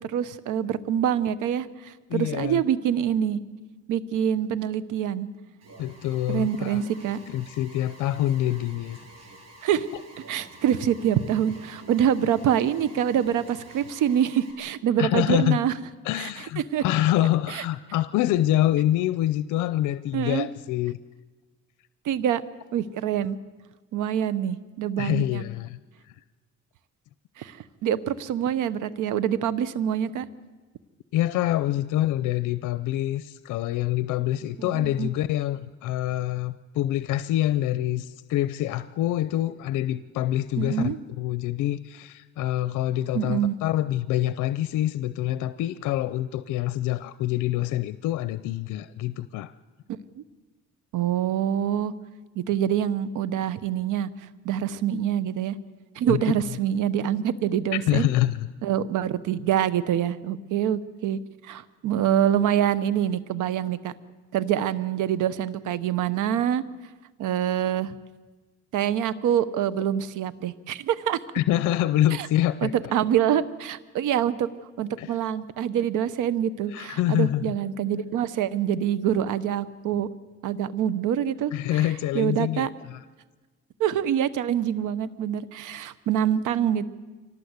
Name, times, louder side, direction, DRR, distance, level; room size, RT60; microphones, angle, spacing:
voice 1, 0.0-3.4 3.9-5.3 6.3-7.2 9.6-9.9 10.3-15.7 16.2-16.3 16.7-16.8 17.5-17.6 20.1-20.5 22.0-22.4 22.7-23.4 23.9-25.4 27.4-30.3 34.6-35.1 40.6-41.0 43.1-43.5 50.2-50.3 50.9-51.9 52.4-54.1 54.4-55.6 55.9-58.1 58.6-63.9 64.3-66.6 67.2-67.9 68.7-71.2 72.2-72.3 72.6-74.5 74.8-80.1 80.4-81.5 82.1-82.7 83.8-86.9, right 10 dB, 85° right, 16 dB, 1.1 m, -25 dB
voice 2, 2.1-2.6 5.8-6.8 7.3-9.0 9.9-10.0 15.0-15.6 16.0-21.0 25.0-25.8 26.0-26.1 31.1-49.5 56.1-56.2 57.9-58.5 71.3-72.7 75.0-75.2 76.7-77.5 81.5-83.0, left 13 dB, 90° left, 14 dB, 0.6 m, -26 dB
Alarm, 5.6-14.5, right 2 dB, 60° right, 6.7 m, -49 dB
24.5 x 18.5 x 8.1 m, 1.3 s
cardioid pair, 90°, 30 cm